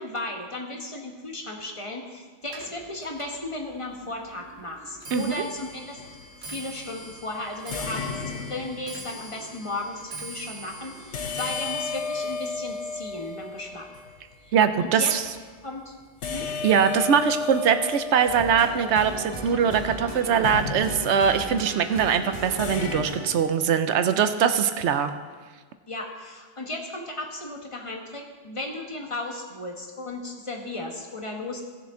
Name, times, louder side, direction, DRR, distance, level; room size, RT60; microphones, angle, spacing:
voice 1, 0.0-6.0 6.4-13.9 14.4-14.5 14.8-15.1 15.6-15.9 16.3-16.5 25.9-31.6, left 2 dB, 25° left, 1 dB, 1.4 m, -35 dB
Clock, 2.5-15.8 16.1-16.6 17.4-17.5 17.8-18.2 18.5-18.6, right 2 dB, 60° right, 2.0 m, -44 dB
sound 1, 6.0-6.3 7.7-9.2 11.1-14.2 16.2-19.6 20.4-21.5 22.6-23.1, left 4 dB, 75° left, 1.2 m, -33 dB
voice 2, 14.5-15.2 16.6-25.1, right 7 dB, 75° right, 9 dB, 0.9 m, -22 dB
sound 2, 18.3-23.3, right 2 dB, 25° right, 1.5 m, -36 dB
17.0 x 6.8 x 3.8 m, 1.5 s
omnidirectional pair, 1.2 m